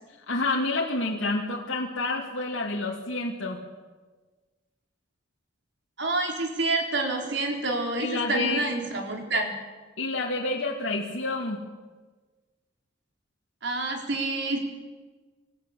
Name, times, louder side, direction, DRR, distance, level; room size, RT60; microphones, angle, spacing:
voice 1, 0.3-3.6 8.0-8.6 10.0-11.6, left 2 dB, 85° left, -2 dB, 2.6 m, -28 dB
voice 2, 6.0-9.5 13.6-14.6, right 2 dB, 65° right, 2 dB, 4.1 m, -28 dB
26.5 x 14.5 x 8.5 m, 1.3 s
head